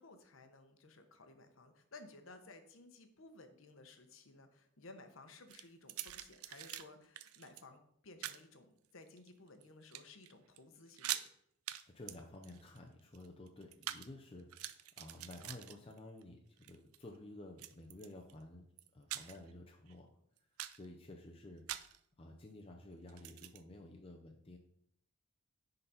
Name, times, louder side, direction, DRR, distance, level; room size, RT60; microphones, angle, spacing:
voice 1, 0.0-11.2, left 2 dB, 65° left, 7 dB, 0.9 m, -57 dB
sound 1, 5.5-6.8 7.1-7.6 8.2-8.4 9.1-9.6 9.9-10.3 10.6-10.7 10.9-11.3 11.7-11.8 12.1-14.1 14.4-16.2 16.6-17.0 17.6-18.3 18.8-19.5 19.9-20.0 20.4-20.8 21.7-22.0 23.1-23.6, right 13 dB, 90° right, 0.4 m, -44 dB
voice 2, 11.8-18.7 18.9-20.1 20.7-21.6 22.2-24.6, left 1 dB, 25° left, 1 dB, 0.6 m, -52 dB
10.0 x 4.0 x 4.1 m, 0.73 s
head